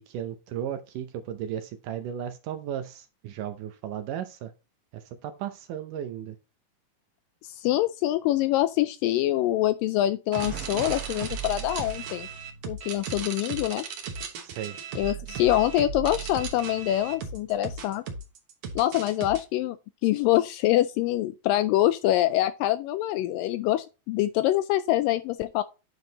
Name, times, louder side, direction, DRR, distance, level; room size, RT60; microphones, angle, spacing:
voice 1, 0.0-4.5 4.9-6.4 14.4-14.8, right 10 dB, 75° right, 2.1 m, -35 dB
voice 2, 7.6-12.3 12.7-13.9 15.0-18.0 18.8-19.8 20.0-25.6, left 14 dB, 80° left, 2.0 m, -25 dB
sound 1, 10.3-19.4, right 6 dB, 55° right, 1.9 m, -36 dB
9.6 x 4.8 x 4.0 m
omnidirectional pair, 4.3 m